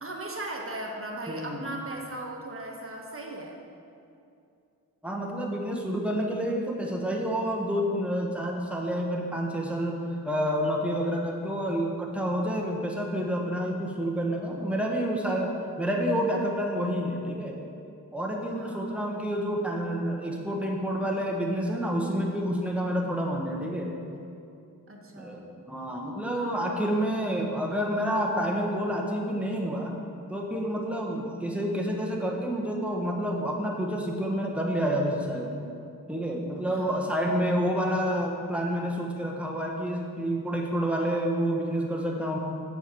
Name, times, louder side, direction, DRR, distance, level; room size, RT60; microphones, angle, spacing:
voice 1, 0.0-3.6 18.5-19.0 24.9-25.5 26.3-27.5 31.1-31.2 36.7-37.0, right 2 dB, 35° right, 0 dB, 1.3 m, -39 dB
voice 2, 1.3-1.7 5.0-10.0 10.2-15.5 15.8-17.6 18.1-23.9 25.2-29.9 30.3-35.5 36.1-42.4, equal, 5° right, -1 dB, 1.2 m, -29 dB
7.2 x 4.7 x 7.0 m, 2.5 s
cardioid pair, 60°, 35 cm